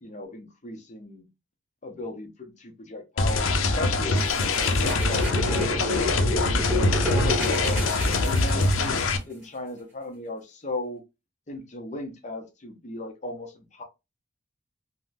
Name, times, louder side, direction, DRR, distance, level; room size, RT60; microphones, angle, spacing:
voice 1, 0.0-1.3 1.8-4.3 4.6-6.6 6.9-7.9 8.2-11.0 11.5-13.8, left 2 dB, 35° left, 0.7 m, -36 dB
sound 1, 3.2-9.2, left 3 dB, 80° left, 0.5 m, -24 dB
sound 2, 4.2-9.1, equal, 10° right, 1.1 m, -30 dB
3.6 x 2.1 x 2.6 m
head